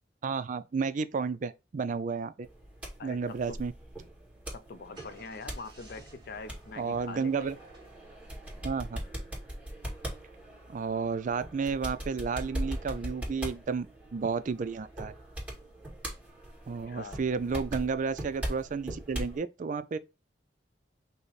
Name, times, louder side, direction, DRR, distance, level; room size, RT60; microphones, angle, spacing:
voice 1, 0.2-2.5 3.0-3.7 6.8-7.6 8.6-9.0 10.7-13.9 14.1-15.1 16.7-20.0, right 5 dB, 45° right, 0.4 m, -32 dB
sound 1, 2.4-19.4, equal, 10° right, 1.9 m, -41 dB
voice 2, 3.0-3.6 4.5-7.5 16.9-17.2, left 4 dB, 60° left, 0.5 m, -44 dB
Car / Engine starting, 4.6-9.2, right 1 dB, 25° right, 1.8 m, -58 dB
5.5 x 2.1 x 4.0 m
head